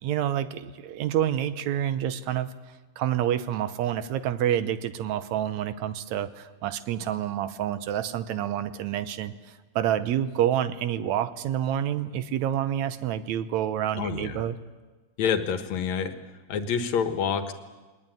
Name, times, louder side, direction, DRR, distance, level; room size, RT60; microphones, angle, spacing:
voice 1, 0.0-2.5 3.0-14.6, right 11 dB, 70° right, 12 dB, 2.0 m, -28 dB
voice 2, 14.0-14.4 15.2-16.1 16.5-17.5, left 7 dB, 65° left, 8 dB, 2.4 m, -27 dB
21.0 x 19.5 x 9.2 m, 1.3 s
omnidirectional pair, 3.7 m